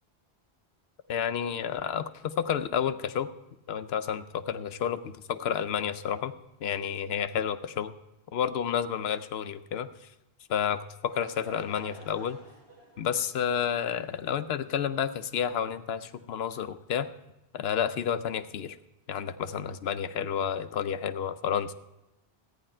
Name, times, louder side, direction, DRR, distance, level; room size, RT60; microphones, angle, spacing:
voice 1, 1.1-3.3 3.7-6.3 6.6-7.9 8.3-9.9 10.5-12.4 13.0-17.1 17.5-18.8 19.1-21.7, left 8 dB, 80° left, 12 dB, 0.9 m, -30 dB
Laughter / Crowd, 10.9-15.4, right 1 dB, 65° right, 5.1 m, -53 dB
14.5 x 9.6 x 4.3 m, 0.93 s
omnidirectional pair, 1.0 m